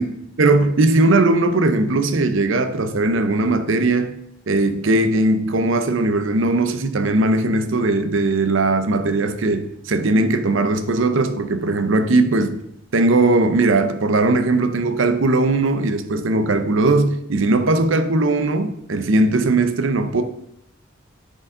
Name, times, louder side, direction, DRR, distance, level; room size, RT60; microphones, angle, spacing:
voice 1, 0.4-4.1 4.5-12.6 12.9-20.2, right 2 dB, 70° right, 0.7 m, -19 dB
10.0 x 5.1 x 3.8 m
head